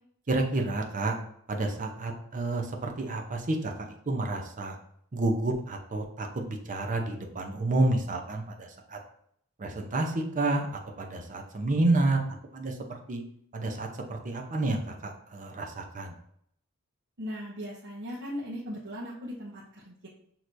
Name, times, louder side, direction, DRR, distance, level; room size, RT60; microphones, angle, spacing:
voice 1, 0.3-1.2 1.5-4.8 5.1-9.0 9.6-10.7 11.0-12.2 12.5-12.8 13.1-13.2 13.5-16.1, right 2 dB, 35° right, 2 dB, 0.7 m, -29 dB
voice 2, 17.2-20.1, equal, 55° right, -7 dB, 0.9 m, -38 dB
6.2 x 2.9 x 2.6 m, 0.68 s
head